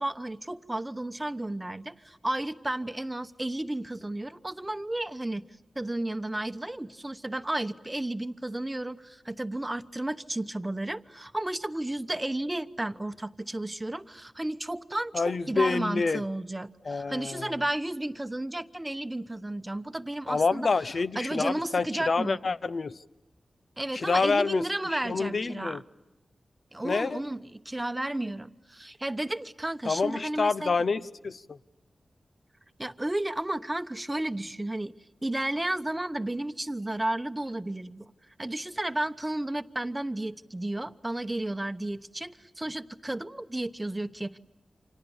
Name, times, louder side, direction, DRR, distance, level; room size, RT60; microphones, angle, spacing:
voice 1, 0.0-5.5 5.7-20.7 21.1-22.4 23.8-25.8 26.7-30.8 32.8-34.9 35.2-38.1 38.4-44.4, right 1 dB, 15° right, 11 dB, 1.0 m, -33 dB
voice 2, 15.1-16.2 16.8-17.5 20.3-22.9 23.9-25.8 26.8-27.2 29.9-31.6, left 4 dB, 60° left, 13 dB, 0.9 m, -27 dB
29.5 x 26.5 x 7.2 m, 1.0 s
wide cardioid pair, 75°, 0 cm